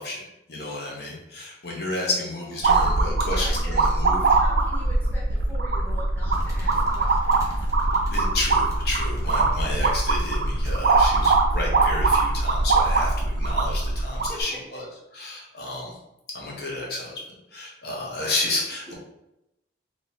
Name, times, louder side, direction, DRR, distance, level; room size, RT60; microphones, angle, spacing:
voice 1, 0.0-4.4 6.7-6.8 8.1-14.8 15.1-16.0 16.3-17.2 17.5-18.9, left 2 dB, 55° left, -3 dB, 0.9 m, -31 dB
sound 1, 2.6-14.4, right 3 dB, 60° right, 0.5 m, -22 dB
voice 2, 2.7-3.8 4.3-7.5 14.1-14.6, equal, 10° left, -7 dB, 0.9 m, -42 dB
sound 2, 6.2-9.8 10.6-10.8 11.2-11.4, right 1 dB, 15° right, 0.7 m, -38 dB
2.9 x 2.9 x 4.2 m, 0.87 s
head